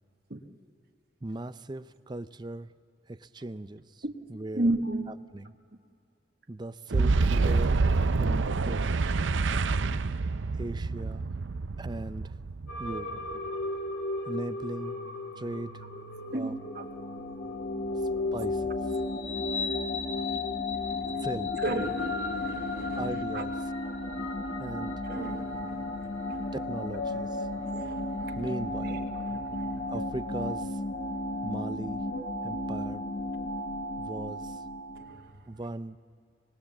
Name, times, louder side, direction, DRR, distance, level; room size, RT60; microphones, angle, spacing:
voice 1, 1.2-2.7 3.1-4.0 4.3-4.7 5.3-5.5 6.5-7.8 8.2-8.9 10.6-11.3 11.8-12.4 12.8-13.2 14.3-15.0 15.4-15.8 16.3-16.6 18.3-18.8 21.2-21.5 22.9-23.5 24.6-25.0 26.5-27.5 28.4-29.0 29.9-30.8 31.4-32.0 32.4-33.1 34.0-34.6 35.5-36.0, right 2 dB, 25° right, 13 dB, 0.5 m, -38 dB
voice 2, 4.5-5.1 7.0-7.5 13.3-13.4 16.3-16.9 20.8-21.3 21.6-23.4 25.0-26.5 27.2-28.4 28.8-29.9 34.9-35.6, right 2 dB, 55° right, 4 dB, 1.3 m, -36 dB
Boom, 6.9-13.5, right 3 dB, 75° right, 0.6 m, -27 dB
sound 1, 12.7-32.2, left 2 dB, 85° left, 1.8 m, -37 dB
sound 2, 16.3-35.3, left 2 dB, 35° left, 1.1 m, -35 dB
25.5 x 20.0 x 7.1 m, 2.4 s
head